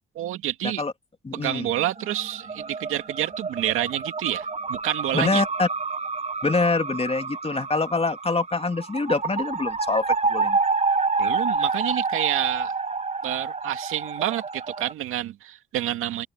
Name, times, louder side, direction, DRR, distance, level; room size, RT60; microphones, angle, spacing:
voice 1, 0.2-0.8 1.3-5.4 11.2-12.7 13.2-16.3, right 13 dB, 85° right, 2.2 m, -28 dB
voice 2, 1.2-1.7 5.1-5.7 6.4-10.0 10.3-10.6, left 3 dB, 30° left, 2.3 m, -25 dB
sound 1, 1.8-14.9, right 4 dB, 30° right, 1.4 m, -28 dB
open air
supercardioid pair, 55°, 21 cm